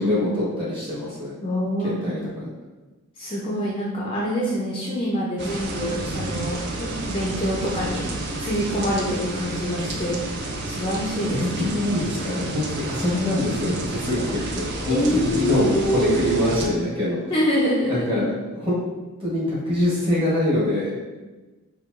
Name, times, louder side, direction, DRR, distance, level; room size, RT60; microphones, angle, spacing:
voice 1, 0.0-1.4 1.8-2.5 11.3-17.2 17.9-18.8 19.2-20.9, left 1 dB, 25° right, -7 dB, 1.1 m, -24 dB
voice 2, 1.4-2.0 3.2-10.2 10.7-11.8 14.9-16.8 17.3-18.1, equal, 25° left, -5 dB, 0.4 m, -26 dB
sound 1, 5.4-16.7, right 2 dB, 50° right, 0.4 m, -31 dB
4.5 x 2.2 x 2.5 m, 1.2 s
head